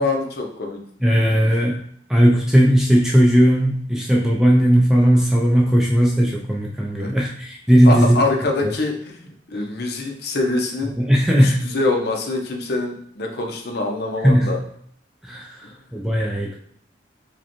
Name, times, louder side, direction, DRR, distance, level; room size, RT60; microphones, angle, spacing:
voice 1, 0.0-0.8 1.4-1.5 7.0-7.1 7.8-11.0 11.3-14.6 15.6-15.7, left 2 dB, 60° left, 2 dB, 0.6 m, -24 dB
voice 2, 1.0-1.8 2.1-8.2 11.0-11.7 14.2-14.6 15.3-15.6 15.9-16.5, equal, 5° right, -2 dB, 0.3 m, -17 dB
4.8 x 2.2 x 2.9 m, 0.64 s
head